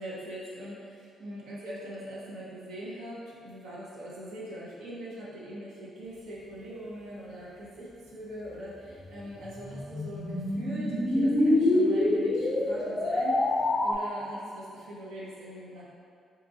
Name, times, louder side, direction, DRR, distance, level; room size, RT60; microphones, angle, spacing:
voice 1, 0.0-15.8, right 1 dB, 85° right, -6 dB, 0.8 m, -42 dB
sound 1, 9.0-13.9, left 1 dB, 25° left, 0.3 m, -26 dB
2.9 x 2.5 x 3.7 m, 2.3 s
cardioid pair, 90°, 0 cm